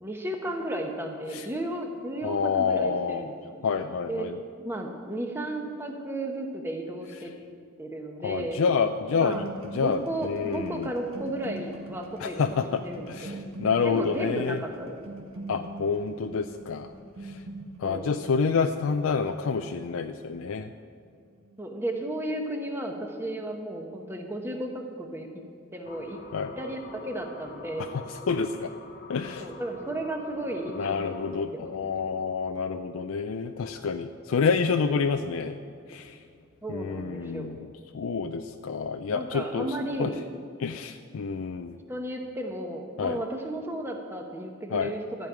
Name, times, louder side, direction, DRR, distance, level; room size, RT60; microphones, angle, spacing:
voice 1, 0.0-3.6 4.1-4.3 4.6-7.3 7.8-8.6 9.2-9.5 9.8-13.4 13.8-15.0 17.8-18.1 21.6-25.3 25.7-26.2 26.6-27.9 29.4-31.9 36.6-37.6 39.1-40.1 41.9-45.3, right 1 dB, 10° right, 2 dB, 0.9 m, -34 dB
voice 2, 2.2-3.3 3.6-4.3 8.2-9.5 9.7-10.9 12.2-14.6 15.5-16.9 17.2-17.4 17.8-20.7 26.3-26.5 27.8-28.7 29.1-29.5 30.8-35.6 35.9-36.2 36.7-40.1 40.6-41.8 43.0-43.2 44.7-44.9, left 5 dB, 80° left, 8 dB, 0.4 m, -28 dB
sound 1, 9.1-21.0 21.3-21.7, right 2 dB, 80° right, 1.5 m, -43 dB
sound 2, 25.8-31.4, left 3 dB, 40° left, 0.8 m, -45 dB
13.5 x 5.3 x 8.9 m, 2.3 s
head